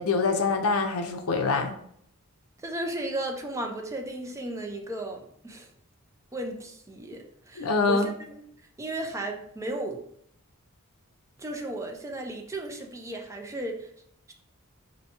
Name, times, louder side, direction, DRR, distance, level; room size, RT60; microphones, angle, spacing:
voice 1, 0.0-1.7 7.6-8.1, left 4 dB, 75° left, 5 dB, 0.5 m, -25 dB
voice 2, 2.6-5.7 6.3-8.5 8.8-10.0 11.4-13.9 14.3-14.4, right 1 dB, 15° right, 3 dB, 0.4 m, -35 dB
4.5 x 2.6 x 2.8 m, 0.69 s
head